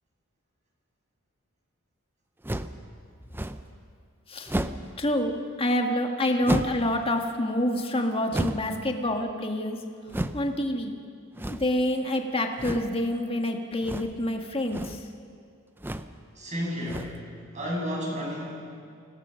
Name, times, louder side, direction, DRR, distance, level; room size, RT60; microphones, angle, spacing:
sound 1, 2.4-2.8 3.3-3.7 4.5-4.9 6.4-6.9 8.3-8.8 10.1-10.5 11.3-11.8 12.6-13.0 13.8-14.2 14.6-15.0 15.8-16.2 16.8-17.3, right 1 dB, 10° right, 0.6 m, -32 dB
voice 1, 5.0-9.8 10.3-10.9 11.5-15.0, left 1 dB, 25° left, 3 dB, 1.7 m, -27 dB
voice 2, 16.3-17.2 17.5-18.5, equal, 35° right, -3 dB, 6.8 m, -31 dB
25.0 x 17.5 x 6.4 m, 2.3 s
head